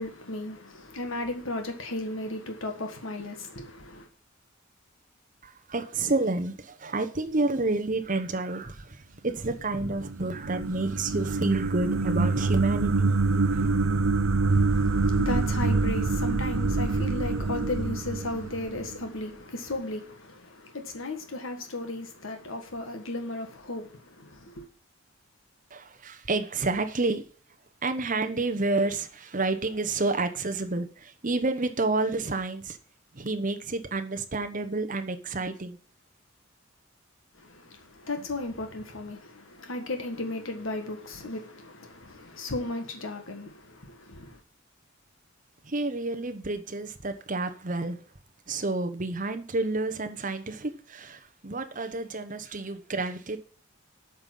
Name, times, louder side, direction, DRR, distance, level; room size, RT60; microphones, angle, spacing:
voice 1, 0.0-4.1 14.5-24.7 37.4-44.4, left 2 dB, 80° left, 1.6 m, -35 dB
voice 2, 5.4-13.1 13.5-13.7 25.7-27.2 27.8-32.8 33.1-35.8 45.6-48.0 48.5-53.4, right 2 dB, 40° right, 1.0 m, -29 dB
sound 1, 9.8-19.1, right 3 dB, 90° right, 0.7 m, -26 dB
8.8 x 5.5 x 7.6 m
head